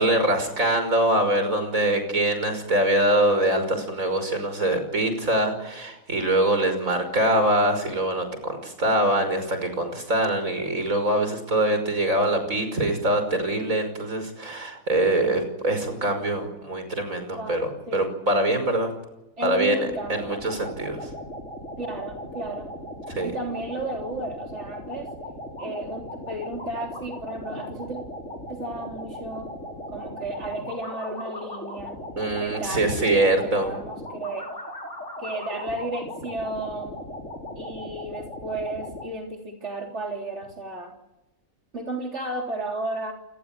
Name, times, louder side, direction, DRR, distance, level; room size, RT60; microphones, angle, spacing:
voice 1, 0.0-18.9 19.4-21.1 23.1-23.3 32.2-33.7, right 1 dB, 70° right, 8 dB, 6.0 m, -24 dB
voice 2, 19.4-20.3 21.8-22.7 23.2-25.1 25.6-28.0 28.5-29.5 29.9-31.9 32.4-34.5 35.2-37.0 37.6-40.9 41.7-43.1, right 2 dB, 55° right, 1 dB, 3.9 m, -33 dB
sound 1, 19.9-39.1, left 1 dB, 60° left, 5.5 m, -38 dB
29.0 x 19.5 x 9.1 m, 0.96 s
omnidirectional pair, 1.4 m